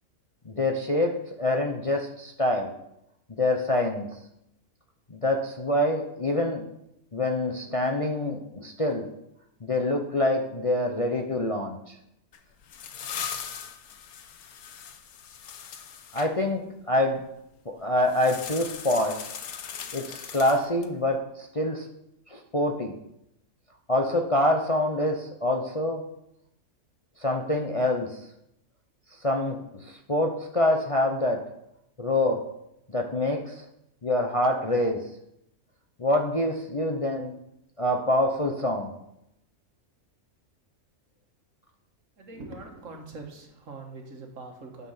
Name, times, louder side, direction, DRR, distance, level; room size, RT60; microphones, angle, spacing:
voice 1, 0.4-2.7 3.3-4.2 5.1-6.6 7.1-9.1 9.6-12.0 16.1-17.2 17.6-19.3 19.9-21.9 22.3-22.9 23.9-26.0 27.2-28.3 29.1-31.4 32.0-32.4 32.9-33.7 34.0-35.0 36.0-37.4 37.8-38.9, left 1 dB, 30° left, 3 dB, 0.8 m, -26 dB
sound 1, 12.3-16.3 18.0-21.0, left 8 dB, 85° left, 1.3 m, -39 dB
voice 2, 42.2-44.9, right 3 dB, 60° right, 3 dB, 1.9 m, -42 dB
9.6 x 6.9 x 5.8 m, 0.80 s
omnidirectional pair, 1.5 m